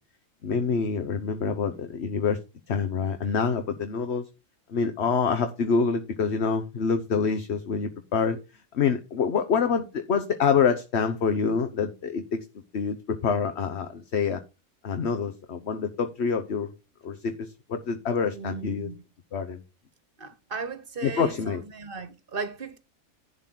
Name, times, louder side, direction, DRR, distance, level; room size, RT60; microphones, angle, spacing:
voice 1, 0.4-2.4 2.7-4.3 4.7-8.4 8.7-12.4 12.7-14.4 14.8-16.7 17.0-18.9 19.3-19.6 21.0-21.6, left 6 dB, 55° left, 1.2 m, -26 dB
voice 2, 18.3-19.0 20.2-22.8, right 5 dB, 45° right, 1.4 m, -36 dB
11.0 x 4.0 x 7.6 m
omnidirectional pair, 1.3 m